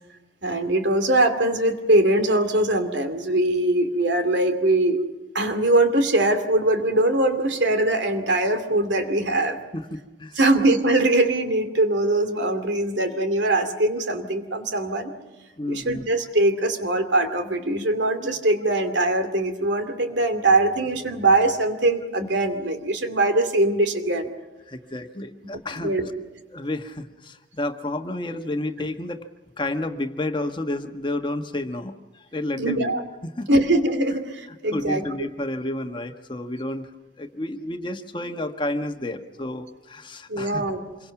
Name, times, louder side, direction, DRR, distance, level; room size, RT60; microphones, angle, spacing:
voice 1, 0.4-5.0 5.3-9.6 10.4-15.1 15.7-24.3 25.8-26.1 32.6-33.0 33.5-35.1 40.3-40.8, right 2 dB, 80° right, 7 dB, 2.6 m, -22 dB
voice 2, 9.7-10.4 15.6-16.0 24.7-25.9 26.5-29.2 29.6-32.9 33.4-33.6 34.7-36.9 37.2-40.6, left 1 dB, 25° left, 6 dB, 1.2 m, -30 dB
26.5 x 23.0 x 5.9 m, 1.1 s
head